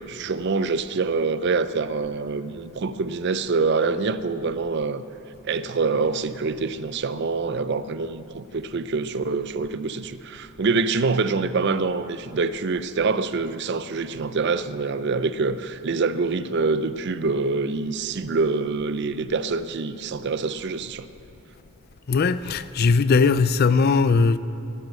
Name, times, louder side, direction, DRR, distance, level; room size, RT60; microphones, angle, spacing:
voice 1, 0.0-5.0 5.4-21.1, right 4 dB, 50° right, 0.5 m, -25 dB
voice 2, 22.1-24.4, left 4 dB, 45° left, 0.4 m, -19 dB
15.5 x 12.5 x 5.4 m
head